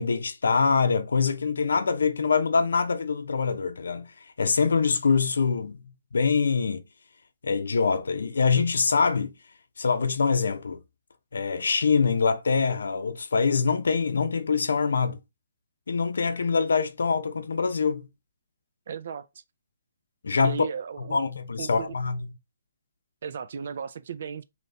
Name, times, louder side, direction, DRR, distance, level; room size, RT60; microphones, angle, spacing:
voice 1, 0.0-4.1 4.4-5.8 6.1-6.8 7.4-9.3 9.8-10.8 11.3-15.2 15.9-18.1 20.2-20.6 21.1-22.3, left 5 dB, 90° left, 0.6 m, -24 dB
voice 2, 18.9-19.4 20.4-21.2 21.6-22.0 23.2-24.4, right 6 dB, 50° right, 0.3 m, -35 dB
4.0 x 2.8 x 3.3 m
hypercardioid pair, 175°, 0 cm